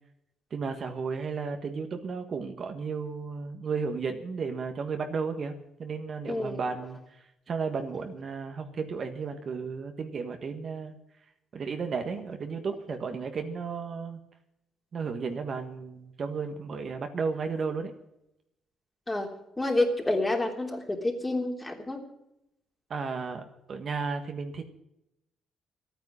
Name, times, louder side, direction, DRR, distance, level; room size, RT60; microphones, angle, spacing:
voice 1, 0.5-10.9 11.5-14.2 14.9-17.9 22.9-24.7, right 5 dB, 50° right, 6 dB, 1.6 m, -34 dB
voice 2, 6.3-6.6 19.1-19.3 19.6-22.0, left 2 dB, 15° left, 1 dB, 3.3 m, -28 dB
13.0 x 9.4 x 9.8 m, 0.83 s
cardioid pair, 90°, 0 cm